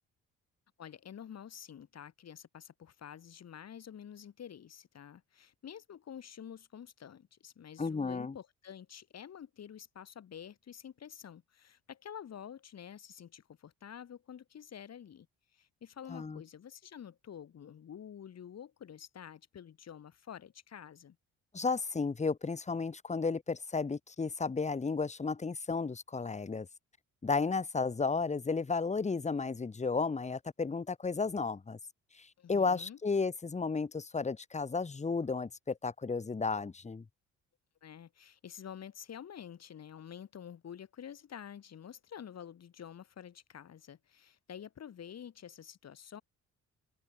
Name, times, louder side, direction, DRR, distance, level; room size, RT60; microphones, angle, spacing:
voice 1, 0.8-15.3 15.5-21.2 32.4-33.0 37.8-46.2, left 9 dB, 60° left, 6.0 m, -49 dB
voice 2, 7.8-8.3 16.1-16.4 21.5-26.7 27.2-31.8 32.1-37.0, left 4 dB, 25° left, 1.5 m, -33 dB
cardioid pair, 90°, 30 cm